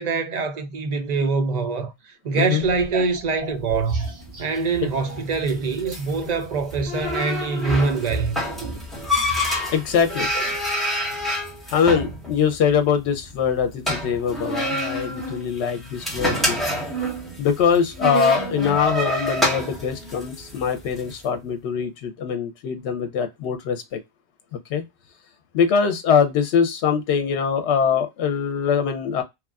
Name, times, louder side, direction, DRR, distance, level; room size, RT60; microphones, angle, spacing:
voice 1, 0.0-1.9 2.2-4.1 4.4-8.4 15.6-15.7, right 4 dB, 55° right, 0.5 m, -24 dB
voice 2, 2.3-2.6 9.7-10.3 11.7-16.6 17.4-24.0 24.7-24.8 25.5-29.2, left 7 dB, 85° left, 0.9 m, -22 dB
sound 1, 2.6-5.5 5.8-10.6, right 3 dB, 80° right, 1.1 m, -34 dB
sound 2, 3.9-21.1, equal, ahead, 1.0 m, -28 dB
3.0 x 2.4 x 2.2 m
omnidirectional pair, 1.1 m